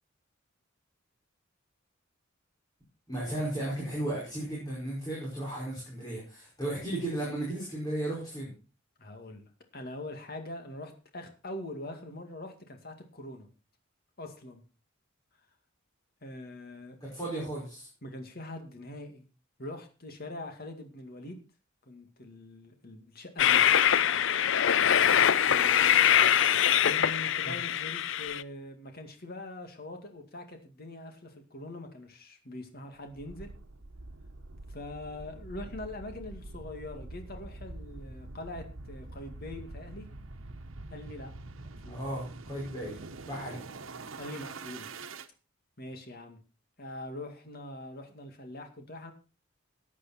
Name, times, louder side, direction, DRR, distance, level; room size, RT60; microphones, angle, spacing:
voice 1, 3.1-8.5 17.0-17.9 27.5-27.6 41.9-43.0 43.3-43.6, right 1 dB, 20° left, -5 dB, 5.5 m, -35 dB
voice 2, 9.0-13.5 14.2-14.6 16.2-17.0 18.0-19.3 19.6-21.4 21.9-23.7 25.5-26.5 26.8-33.5 34.7-40.1 40.9-41.3 41.8-42.0 43.5-43.8 44.2-44.9 45.8-46.4 46.8-49.1, left 1 dB, 50° left, 5 dB, 2.2 m, -43 dB
Train, 23.4-28.4, left 9 dB, 65° left, 0.5 m, -23 dB
sound 1, 33.1-45.3, right 2 dB, 85° right, 1.1 m, -45 dB
14.5 x 9.8 x 4.4 m, 0.33 s
head